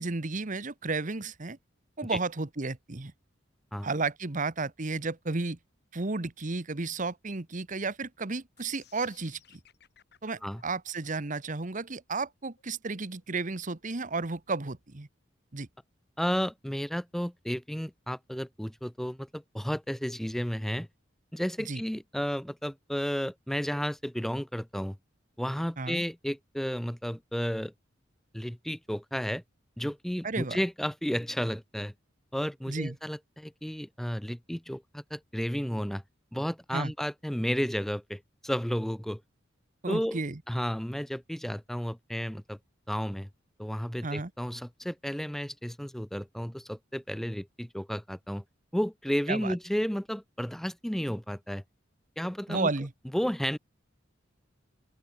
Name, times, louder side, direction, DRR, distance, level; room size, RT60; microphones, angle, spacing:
voice 1, 0.0-1.6 2.0-3.1 3.8-5.6 5.9-9.4 10.2-15.1 15.5-15.7 21.7-21.8 25.8-26.0 30.2-30.6 32.7-33.0 36.7-36.9 39.8-40.4 44.0-44.3 49.3-49.6 52.5-52.9, right 3 dB, 40° right, 1.1 m, -33 dB
sound 1, 8.6-14.6, left 8 dB, 55° left, 4.6 m, -61 dB
voice 2, 16.2-20.9 21.3-25.0 25.4-27.7 28.3-29.4 29.8-31.9 32.3-36.0 36.3-39.2 39.9-40.2 40.5-42.6 42.9-43.3 43.6-48.4 48.7-51.6 52.2-52.7 53.1-53.6, equal, ahead, 0.4 m, -32 dB
open air
head